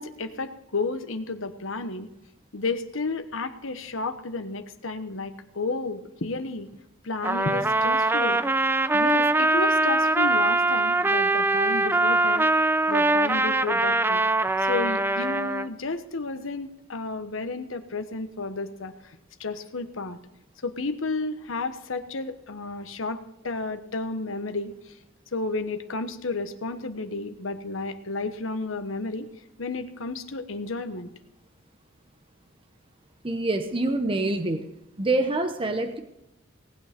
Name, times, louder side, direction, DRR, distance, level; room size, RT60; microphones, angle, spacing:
voice 1, 0.0-2.1 2.5-6.7 7.0-8.4 8.9-12.5 12.9-14.2 14.6-20.2 20.6-25.0 25.3-29.3 29.6-31.1, left 3 dB, 75° left, 9 dB, 1.1 m, -32 dB
Trumpet, 7.2-15.7, right 2 dB, 10° right, 0.4 m, -22 dB
voice 2, 33.2-34.7 35.0-36.0, right 2 dB, 25° right, 7 dB, 0.9 m, -26 dB
18.5 x 9.1 x 5.2 m, 0.89 s
head